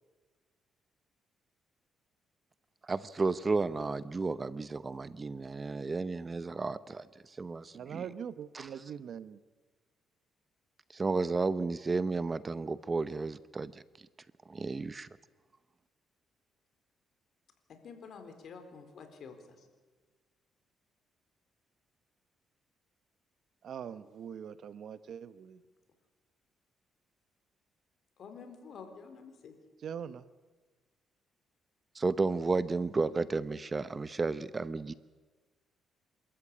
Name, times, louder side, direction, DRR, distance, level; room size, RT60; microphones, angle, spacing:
voice 1, 2.9-8.0 8.5-8.7 10.9-13.8 14.5-15.1 31.9-34.9, right 3 dB, 30° right, 16 dB, 0.7 m, -32 dB
voice 2, 7.7-9.4 23.6-25.6 29.8-30.3, right 8 dB, 65° right, 14 dB, 0.9 m, -42 dB
voice 3, 17.7-19.7 28.2-29.6 33.1-33.3, left 5 dB, 60° left, 6 dB, 4.0 m, -49 dB
27.5 x 13.5 x 8.7 m, 1.4 s
cardioid pair, 90°, 0 cm